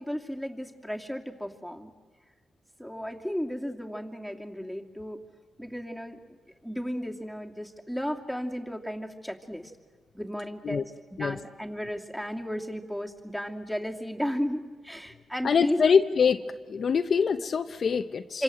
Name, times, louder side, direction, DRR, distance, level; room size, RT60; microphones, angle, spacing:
voice 1, 0.0-1.9 2.8-5.2 5.6-6.2 6.6-9.7 10.1-10.9 11.2-15.9 18.3-18.4, equal, ahead, 3 dB, 2.8 m, -34 dB
voice 2, 15.4-16.4 16.7-18.4, left 6 dB, 55° left, 8 dB, 1.0 m, -24 dB
27.0 x 26.0 x 7.9 m, 1.5 s
cardioid pair, 85°, 0 cm